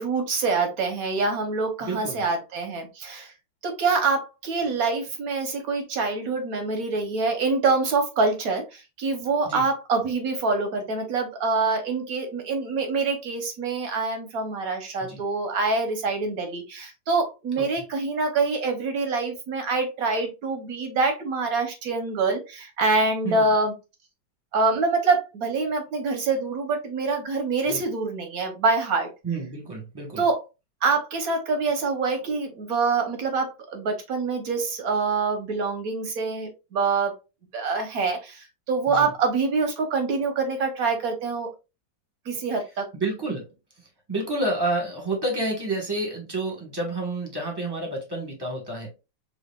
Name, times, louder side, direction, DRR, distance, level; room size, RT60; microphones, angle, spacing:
voice 1, 0.0-3.3 3.6-23.7 24.5-29.1 30.2-30.4 30.8-37.1 37.5-41.5 42.3-42.9, right 4 dB, 65° right, 0.9 m, -25 dB
voice 2, 1.8-2.2 9.4-9.7 15.0-15.2 17.6-17.7 23.2-23.5 27.7-27.8 29.2-30.2 38.9-39.1 42.9-43.5 43.8-48.9, right 2 dB, 20° right, 0.7 m, -29 dB
5.6 x 2.4 x 2.2 m
omnidirectional pair, 2.2 m